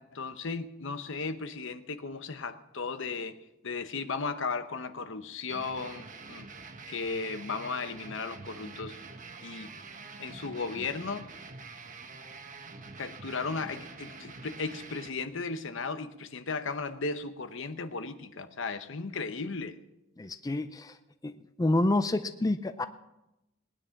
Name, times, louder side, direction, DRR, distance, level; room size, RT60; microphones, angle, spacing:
voice 1, 0.0-6.5 6.9-9.0 9.4-9.7 10.2-11.3 13.0-19.8, left 4 dB, 70° left, 10 dB, 0.9 m, -36 dB
sound 1, 5.5-15.1, right 4 dB, 40° right, 1.2 m, -46 dB
voice 2, 20.2-21.0 21.2-22.9, left 2 dB, 20° left, 10 dB, 0.5 m, -28 dB
19.0 x 10.0 x 5.8 m, 0.93 s
head